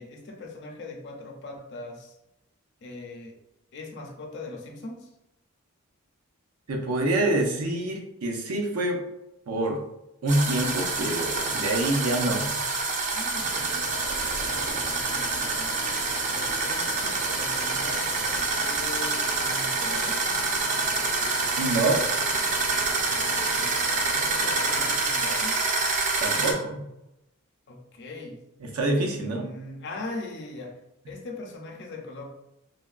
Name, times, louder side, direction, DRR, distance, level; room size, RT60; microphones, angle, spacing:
voice 1, 0.0-2.2 2.8-3.3 3.7-5.1 13.1-13.9 14.4-15.7 16.3-20.2 23.0-25.6 27.7-28.4 29.2-30.8 31.1-32.3, left 2 dB, 55° left, 1 dB, 0.5 m, -41 dB
voice 2, 6.7-9.0 9.5-9.8 10.2-12.5 21.6-22.0 26.2-26.8 28.6-29.4, right 2 dB, 90° right, 2 dB, 0.6 m, -26 dB
sound 1, 10.3-26.5, right 3 dB, 35° right, 0.4 m, -27 dB
sound 2, 13.3-24.9, right 1 dB, 60° right, 1.0 m, -41 dB
3.3 x 2.2 x 2.4 m, 0.88 s
head